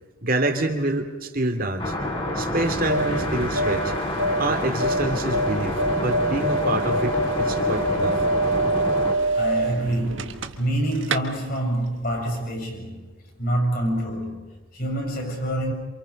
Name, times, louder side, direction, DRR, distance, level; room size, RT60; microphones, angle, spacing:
voice 1, 0.2-1.9 2.3-3.9 4.4-5.8 6.0-8.2, right 2 dB, 45° right, 2.6 m, -26 dB
sound 1, 1.8-9.1, left 1 dB, 25° left, 3.8 m, -28 dB
sound 2, 2.5-10.8 11.0-11.2, right 1 dB, 65° right, 1.4 m, -25 dB
voice 2, 9.3-15.7, right 1 dB, 45° left, 7.5 m, -27 dB
28.0 x 28.0 x 5.3 m
head